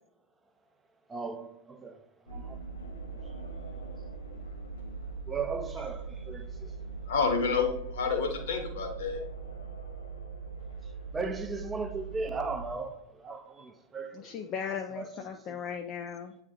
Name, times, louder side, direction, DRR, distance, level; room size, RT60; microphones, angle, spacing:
voice 1, 1.1-2.0 2.3-2.6 3.1-3.2 5.3-6.8 10.8-14.5 15.0-15.1 15.5-15.6, right 4 dB, 15° right, 0.8 m, -37 dB
sound 1, 2.3-12.7, right 4 dB, 85° left, 1.1 m, -41 dB
voice 2, 7.1-9.2, left 5 dB, 65° left, 1.7 m, -29 dB
voice 3, 14.1-16.4, left 7 dB, 35° left, 0.6 m, -37 dB
8.5 x 3.3 x 3.8 m
figure-of-eight pair, 95°, 0 cm